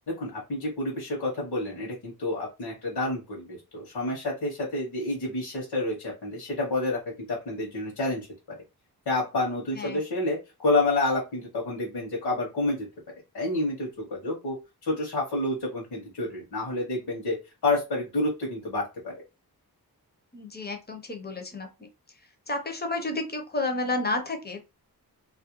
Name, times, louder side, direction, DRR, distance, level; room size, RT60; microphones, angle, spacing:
voice 1, 0.1-7.0 7.3-8.6 9.1-12.9 13.3-14.6 14.8-17.4 17.6-19.1, left 2 dB, 70° left, -4 dB, 0.9 m, -29 dB
voice 2, 20.3-21.9 22.5-24.7, left 2 dB, 25° left, 5 dB, 0.6 m, -31 dB
2.3 x 2.1 x 2.9 m, 0.27 s
wide cardioid pair, 115°, 39 cm